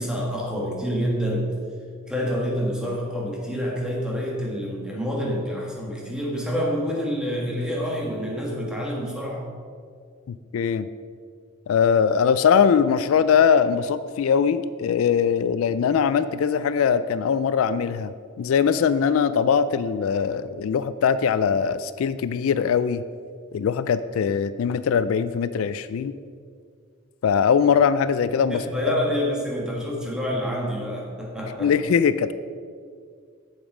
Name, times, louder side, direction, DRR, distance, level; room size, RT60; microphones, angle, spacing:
voice 1, 0.0-1.5 2.1-9.5 28.5-31.7, equal, 5° right, -3 dB, 1.5 m, -27 dB
voice 2, 10.3-10.9 11.7-23.0 23.5-26.1 27.2-28.6 31.6-32.3, left 7 dB, 80° left, 13 dB, 0.3 m, -21 dB
7.2 x 7.1 x 4.9 m, 2.1 s
head